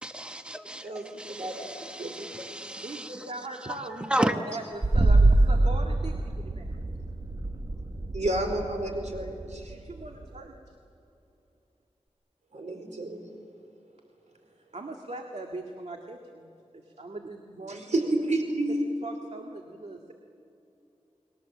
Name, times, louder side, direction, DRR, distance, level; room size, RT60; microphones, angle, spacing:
voice 1, 0.0-3.3 4.1-4.4, right 1 dB, 10° right, 6 dB, 1.3 m, -32 dB
voice 2, 0.8-1.7 2.0-2.3 8.1-9.7 12.5-13.2 17.7-18.8, right 1 dB, 80° right, 4 dB, 4.5 m, -30 dB
voice 3, 2.8-6.7 9.7-10.5 14.7-16.5 16.7-18.1 18.7-20.1, right 2 dB, 65° right, 2 dB, 2.0 m, -40 dB
sound 1, 4.8-10.4, right 2 dB, 40° right, 1.5 m, -25 dB
30.0 x 21.5 x 7.4 m, 2.7 s
wide cardioid pair, 70°, 12 cm